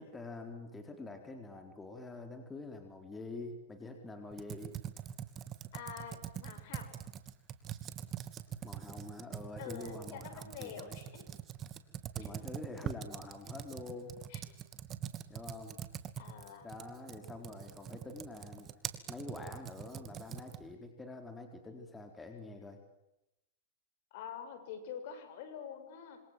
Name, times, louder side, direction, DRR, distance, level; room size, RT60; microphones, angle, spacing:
voice 1, 0.0-4.7 8.6-11.0 12.1-14.2 15.3-15.8 16.6-18.7 19.1-22.8, left 2 dB, 10° left, 5 dB, 4.3 m, -46 dB
Computer keyboard, 4.3-20.7, right 10 dB, 30° right, 2.6 m, -44 dB
voice 2, 5.7-6.9 9.6-11.2 12.2-12.3 14.3-14.4 16.2-16.7 24.1-26.2, left 7 dB, 60° left, 9 dB, 7.3 m, -46 dB
27.0 x 26.5 x 7.7 m, 0.88 s
hypercardioid pair, 130°, 0 cm